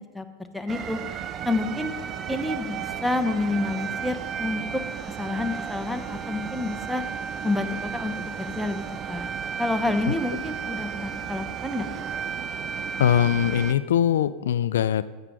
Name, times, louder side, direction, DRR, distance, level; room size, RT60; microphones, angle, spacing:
voice 1, 0.5-1.0 1.4-1.9 2.3-4.8 5.2-7.0 7.4-8.8 9.1-9.3 9.6-11.9, left 2 dB, ahead, 6 dB, 0.9 m, -28 dB
sound 1, 0.7-13.7, right 7 dB, 35° right, 0.6 m, -33 dB
voice 2, 13.0-15.1, left 10 dB, 75° left, 16 dB, 0.4 m, -22 dB
13.0 x 8.1 x 3.7 m, 1.4 s
hypercardioid pair, 90°, 0 cm